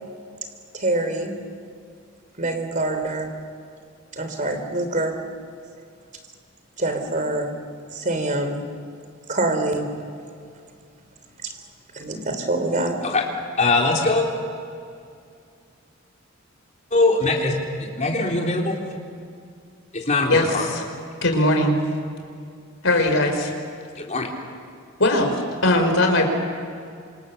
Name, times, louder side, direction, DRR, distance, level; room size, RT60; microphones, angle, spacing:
voice 1, 0.7-1.3 2.4-3.3 4.1-5.2 6.8-7.5 7.9-8.6 9.3-9.9 11.4-11.5 11.9-12.9, right 2 dB, 40° right, 6 dB, 3.4 m, -25 dB
voice 2, 13.6-14.3 16.9-18.8 19.9-20.7 24.0-24.3, left 2 dB, 35° left, 0 dB, 3.8 m, -21 dB
voice 3, 20.3-20.8 21.2-21.8 22.8-23.5 25.0-26.3, left 1 dB, 65° left, 4 dB, 4.6 m, -20 dB
28.0 x 26.5 x 7.0 m, 2.3 s
head